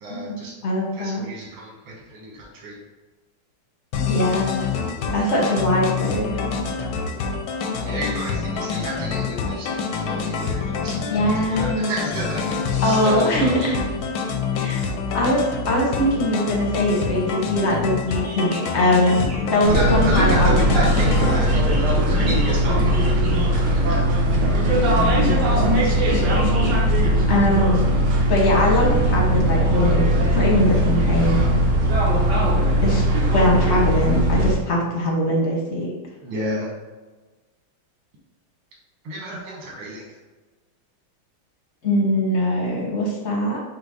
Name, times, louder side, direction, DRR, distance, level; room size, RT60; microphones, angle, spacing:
voice 1, 0.0-0.6 0.9-2.7 7.8-13.7 19.7-24.1 36.2-36.7 39.0-40.2, equal, 85° right, -3 dB, 2.0 m, -31 dB
voice 2, 0.6-1.2 4.0-4.7 5.1-6.3 11.1-11.9 12.8-13.8 14.5-14.8 15.1-20.5 25.1-31.6 32.8-33.0 33.3-35.9 41.8-43.6, left 1 dB, 50° left, -2 dB, 0.8 m, -22 dB
sound 1, 3.9-21.4, left 5 dB, 70° left, 1.1 m, -26 dB
sound 2, 18.1-19.5 20.9-23.7 26.0-27.4, right 2 dB, 40° right, 1.8 m, -40 dB
sound 3, 19.6-34.5, equal, 60° right, 1.3 m, -19 dB
5.2 x 2.2 x 4.7 m, 1.2 s
omnidirectional pair, 2.3 m